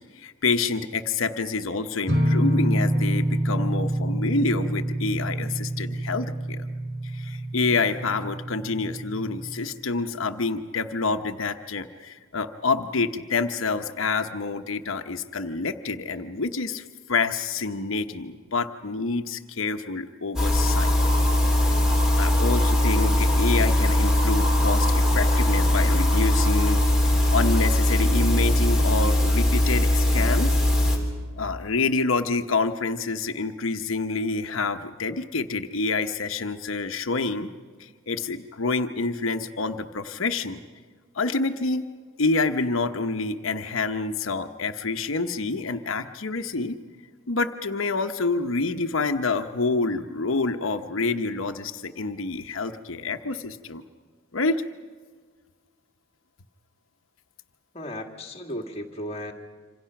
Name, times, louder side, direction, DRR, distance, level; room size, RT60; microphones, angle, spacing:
voice 1, 0.2-6.6 7.1-16.8 17.1-20.9 22.2-30.6 31.4-37.5 37.8-40.6 41.1-41.8 42.2-46.8 47.3-53.8 54.3-54.6, left 3 dB, 75° left, 7 dB, 0.9 m, -27 dB
sound 1, 2.1-9.6, right 1 dB, 60° right, 2.6 m, -27 dB
sound 2, 20.4-31.0, left 1 dB, 5° right, 3.3 m, -20 dB
voice 2, 57.7-59.3, equal, 30° left, 3 dB, 2.0 m, -35 dB
27.0 x 26.0 x 5.9 m, 1.5 s
head